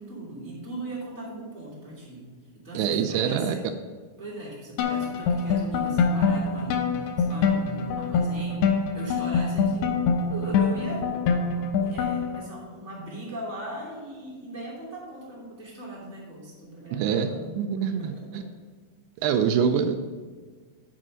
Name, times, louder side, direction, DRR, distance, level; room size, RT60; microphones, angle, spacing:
voice 1, 0.0-2.2 2.5-3.7 4.2-8.7 8.9-11.2 11.7-17.6 17.8-18.5, right 1 dB, 5° left, -6 dB, 1.7 m, -39 dB
voice 2, 2.7-3.5 16.9-17.3 17.6-18.4 19.2-20.0, right 7 dB, 85° right, 7 dB, 2.5 m, -25 dB
sound 1, 4.8-12.4, left 5 dB, 80° left, 2.7 m, -25 dB
7.7 x 5.5 x 6.2 m, 1.5 s
omnidirectional pair, 4.7 m